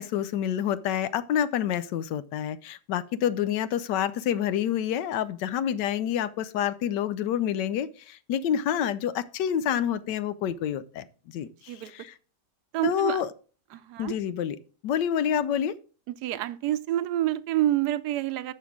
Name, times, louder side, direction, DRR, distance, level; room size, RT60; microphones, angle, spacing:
voice 1, 0.0-12.1 12.8-13.3 14.0-14.6 14.8-15.8, left 9 dB, 90° left, 1.3 m, -28 dB
voice 2, 12.7-13.2 13.7-14.2 16.2-18.5, right 13 dB, 75° right, 1.1 m, -27 dB
10.5 x 6.6 x 3.6 m
omnidirectional pair, 1.8 m